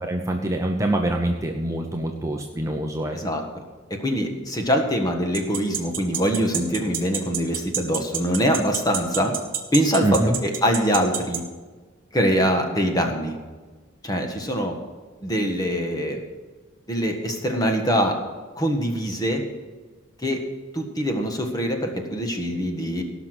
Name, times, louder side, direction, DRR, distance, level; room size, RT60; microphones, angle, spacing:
voice 1, 0.0-3.2 10.0-10.4, right 1 dB, 15° right, 2 dB, 0.8 m, -25 dB
voice 2, 4.0-9.3 9.7-10.0 10.4-11.4 12.1-13.4 14.0-14.7 15.2-16.2 16.9-18.1 18.6-19.4 20.2-20.4 20.7-23.0, equal, 20° left, 3 dB, 1.5 m, -23 dB
sound 1, 5.3-11.4, right 10 dB, 40° right, 1.4 m, -26 dB
17.5 x 6.0 x 6.1 m, 1.4 s
head